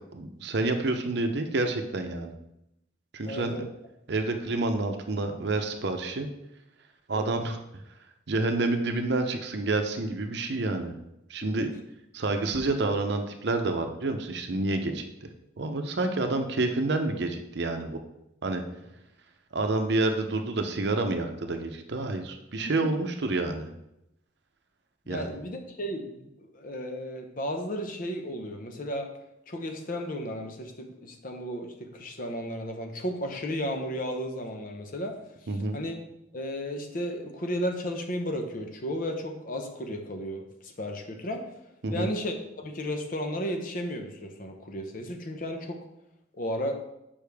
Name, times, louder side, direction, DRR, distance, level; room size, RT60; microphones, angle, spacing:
voice 1, 0.1-2.3 3.1-3.5 4.1-6.3 7.1-7.6 8.3-11.0 11.3-11.7 12.1-15.3 15.6-18.0 18.4-18.6 19.5-23.7 25.1-25.3 35.5-35.8 41.8-42.1, right 2 dB, 60° right, 6 dB, 0.7 m, -28 dB
voice 2, 3.3-3.7 7.2-7.3 11.4-11.6 22.8-22.9 25.1-29.1 29.5-35.2 35.7-36.0 36.3-41.4 41.9-45.8 46.3-46.7, equal, 45° left, 4 dB, 0.8 m, -34 dB
6.6 x 5.4 x 3.4 m, 0.86 s
head